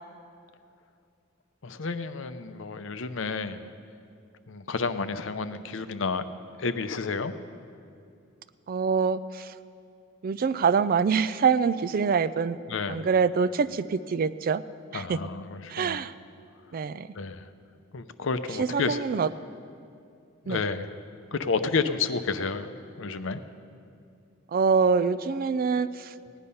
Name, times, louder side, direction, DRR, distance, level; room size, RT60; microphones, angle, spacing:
voice 1, 1.6-3.7 4.5-6.2 6.6-7.3 12.7-13.0 14.9-16.0 17.1-17.5 17.9-19.2 20.4-21.0 21.3-22.7 23.0-23.4, left 4 dB, 70° left, 10 dB, 0.7 m, -30 dB
voice 2, 8.7-9.5 10.2-12.6 12.9-14.6 14.9-15.2 15.7-16.1 16.7-17.1 18.6-19.3 20.5-20.6 24.5-25.9, right 5 dB, 45° right, 15 dB, 0.4 m, -25 dB
17.5 x 10.5 x 5.5 m, 2.4 s
head